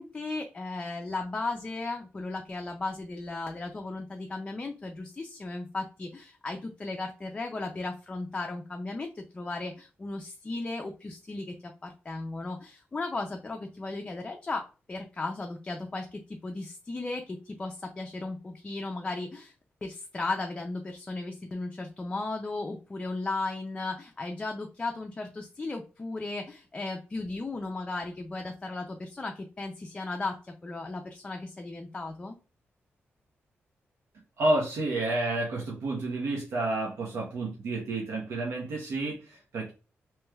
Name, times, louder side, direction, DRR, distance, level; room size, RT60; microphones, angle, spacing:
voice 1, 0.0-19.5 19.8-32.4, left 3 dB, 20° left, 2 dB, 0.3 m, -36 dB
voice 2, 34.4-39.7, right 2 dB, 80° right, -2 dB, 0.8 m, -30 dB
3.1 x 3.0 x 2.2 m, 0.33 s
wide cardioid pair, 145°, 4 cm